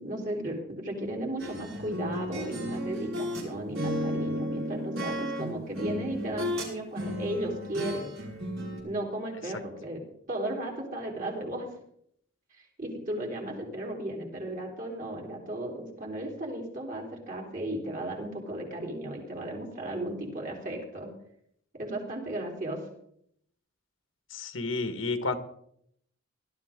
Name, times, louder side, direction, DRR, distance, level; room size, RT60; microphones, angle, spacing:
voice 1, 0.0-8.2 8.8-10.0 10.3-11.7 12.5-21.1 21.7-22.8, right 1 dB, 40° right, 1 dB, 4.0 m, -35 dB
sound 1, 1.4-3.5 3.8-6.7 7.0-8.8, equal, 85° right, 5.9 m, -33 dB
voice 2, 24.3-25.3, left 3 dB, 75° left, 9 dB, 1.6 m, -31 dB
19.5 x 12.5 x 3.8 m, 0.70 s
head